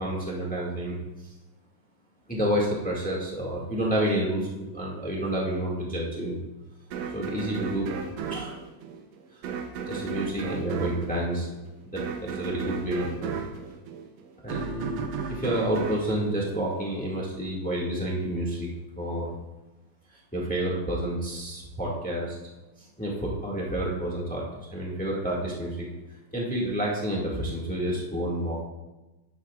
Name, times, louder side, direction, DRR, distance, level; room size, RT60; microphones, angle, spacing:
voice 1, 0.0-1.3 2.3-6.3 7.1-7.9 8.3-8.6 9.3-9.4 9.9-11.5 11.8-13.3 14.4-15.0 15.3-18.7 19.0-19.3 20.1-22.4 23.0-24.4 24.7-25.9 26.3-28.6, right 1 dB, 10° left, -4 dB, 0.5 m, -29 dB
sound 1, 6.9-17.1, right 6 dB, 80° right, 1.5 m, -35 dB
11.0 x 10.5 x 2.4 m, 1.1 s
omnidirectional pair, 4.0 m